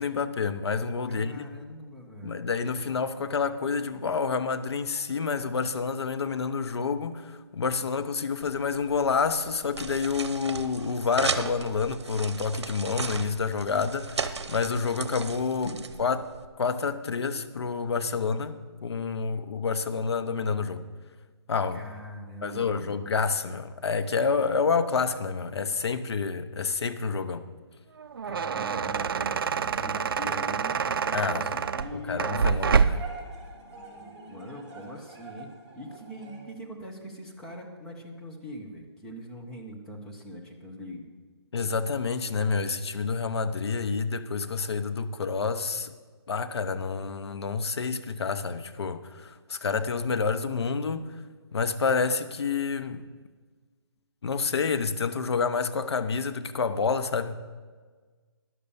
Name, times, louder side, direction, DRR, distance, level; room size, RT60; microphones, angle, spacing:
voice 1, 0.0-1.4 2.2-15.7 16.0-16.3 16.6-18.5 18.8-20.8 21.5-21.9 22.4-27.5 31.1-31.4 31.9-33.0 41.5-45.9 46.3-51.1 51.5-53.0 54.2-57.4, left 5 dB, 70° left, 10 dB, 0.8 m, -28 dB
voice 2, 1.1-2.4 15.6-15.8 21.7-23.0 28.2-32.2 34.0-41.1, equal, 5° left, -1 dB, 0.6 m, -42 dB
sound 1, 8.4-16.5, right 5 dB, 80° right, 0.8 m, -36 dB
sound 2, 28.0-33.2, right 6 dB, 55° right, 0.4 m, -27 dB
sound 3, 31.1-36.4, right 3 dB, 20° right, 2.8 m, -46 dB
11.0 x 6.7 x 6.9 m, 1.5 s
hypercardioid pair, 165°, 14 cm